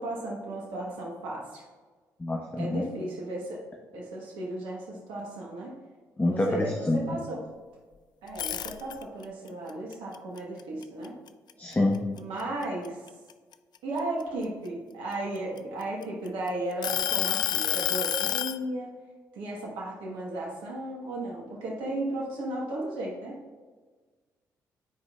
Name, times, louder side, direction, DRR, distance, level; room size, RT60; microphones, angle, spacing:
voice 1, 0.0-1.6 2.5-3.6 3.9-5.8 6.2-7.4 8.2-11.2 12.1-13.0 13.8-18.9 19.3-23.4, right 1 dB, 75° right, -2 dB, 1.2 m, -35 dB
voice 2, 2.2-2.8 6.2-7.0 11.6-12.0, left 2 dB, 20° left, 0 dB, 0.9 m, -26 dB
sound 1, 8.3-9.2 9.7-11.5 11.9-12.2 12.6-14.4 15.1-16.3 16.8-18.6, left 10 dB, 55° left, 0.3 m, -29 dB
9.5 x 4.8 x 2.3 m, 1.4 s
hypercardioid pair, 45°, 9 cm